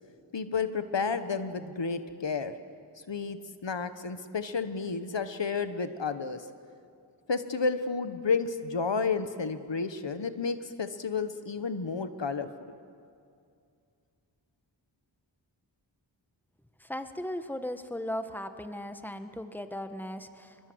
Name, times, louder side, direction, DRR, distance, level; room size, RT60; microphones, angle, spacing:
voice 1, 0.3-2.6 3.1-6.4 7.3-12.7, left 5 dB, 70° left, 10 dB, 1.2 m, -31 dB
voice 2, 16.8-20.7, left 1 dB, 5° left, 8 dB, 1.4 m, -37 dB
24.5 x 22.5 x 7.9 m, 2.4 s
wide cardioid pair, 55°, 45 cm